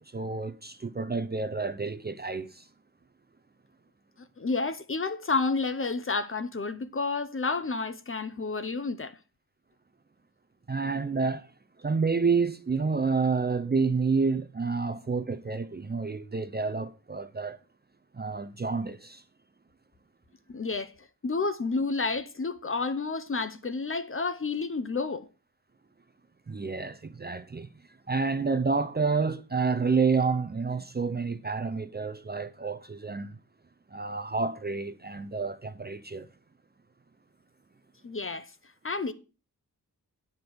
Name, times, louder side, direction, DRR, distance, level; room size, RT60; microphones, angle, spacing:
voice 1, 0.1-2.7 10.7-11.5 11.8-17.6 18.1-19.2 26.5-27.7 28.1-33.4 33.9-36.3, right 4 dB, 25° right, 0.5 m, -29 dB
voice 2, 4.4-9.2 20.5-20.9 21.2-25.3 38.0-38.5 38.8-39.1, left 4 dB, 35° left, 0.8 m, -30 dB
9.6 x 5.2 x 6.0 m
wide cardioid pair, 120°, 39 cm